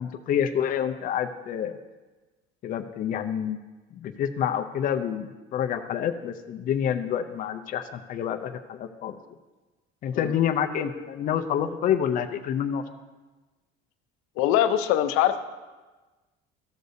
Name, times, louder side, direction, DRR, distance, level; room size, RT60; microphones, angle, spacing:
voice 1, 0.0-1.7 2.6-3.6 3.9-9.2 10.0-12.8, left 9 dB, 40° left, 6 dB, 0.5 m, -28 dB
voice 2, 14.4-15.4, left 11 dB, 90° left, 9 dB, 0.6 m, -22 dB
13.5 x 6.5 x 2.7 m, 1.2 s
cardioid pair, 155°, 21 cm